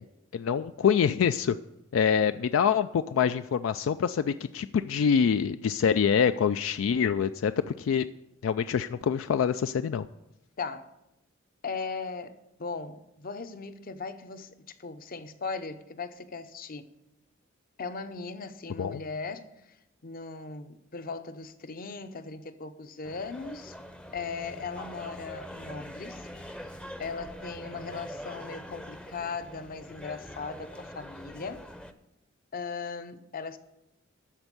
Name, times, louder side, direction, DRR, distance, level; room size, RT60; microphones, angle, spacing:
voice 1, 0.3-1.6 1.9-7.5 7.8-8.0 8.4-10.0 18.8-19.0, left 7 dB, 80° left, 12 dB, 0.3 m, -25 dB
voice 2, 10.6-10.9 11.6-16.9 17.8-19.5 20.0-23.7 24.1-26.3 27.0-31.6 32.5-33.6, left 4 dB, 45° left, 10 dB, 0.7 m, -38 dB
sound 1, 23.0-31.9, equal, 5° left, 0.6 m, -44 dB
13.0 x 4.4 x 8.1 m, 0.90 s
head